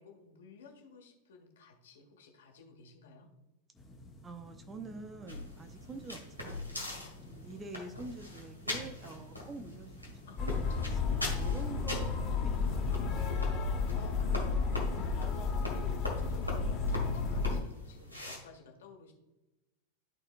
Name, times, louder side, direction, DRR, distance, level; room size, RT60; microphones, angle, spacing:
voice 1, 0.0-3.3 7.5-7.7 10.3-10.4 10.8-10.9 13.9-19.1, left 5 dB, 60° left, 2 dB, 1.6 m, -53 dB
sound 1, 3.7-13.2, left 1 dB, 15° left, 1.3 m, -54 dB
voice 2, 4.2-7.0 7.3-10.6 10.9-13.6 13.8-14.0 14.9-15.2, right 3 dB, 20° right, 7 dB, 0.7 m, -47 dB
sound 2, 5.3-18.4, left 1 dB, 90° right, 1.8 m, -42 dB
sound 3, 10.4-17.6, left 4 dB, 35° left, 1.5 m, -32 dB
13.0 x 4.3 x 2.5 m, 1.0 s
figure-of-eight pair, 90°, 0 cm